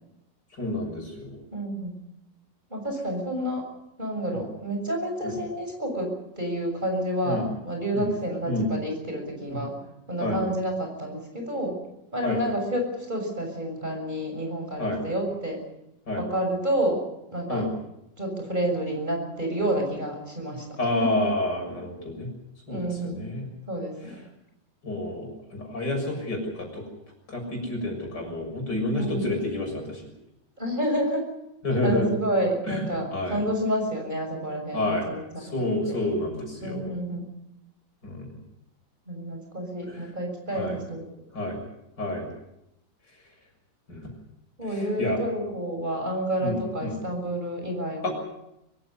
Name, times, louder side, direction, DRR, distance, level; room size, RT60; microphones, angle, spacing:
voice 1, 0.5-1.4 4.3-4.4 5.2-5.3 7.2-7.5 7.9-8.1 8.5-8.7 9.5-9.6 10.2-10.4 12.2-12.4 14.8-15.0 16.1-16.2 17.5-17.7 20.8-22.3 22.7-23.5 24.8-26.8 27.3-30.1 31.6-32.1 32.7-32.8 33.1-33.4 34.7-35.1 35.4-36.9 38.0-38.3 39.9-40.1 40.5-40.8 41.3-41.6 42.0-42.3 43.9-44.1 44.7-45.2 46.4-47.0 48.0-48.1, left 1 dB, 65° left, 2 dB, 7.5 m, -29 dB
voice 2, 1.5-2.0 2.7-3.7 4.0-9.7 10.1-11.8 12.1-15.6 16.1-17.0 17.3-17.6 18.2-20.7 22.7-23.2 23.7-24.2 29.0-29.3 30.6-31.3 31.7-36.0 36.6-37.3 39.1-41.1 44.6-48.1, right 1 dB, 25° right, 2 dB, 7.0 m, -29 dB
24.5 x 16.0 x 9.6 m, 0.85 s
omnidirectional pair, 2.0 m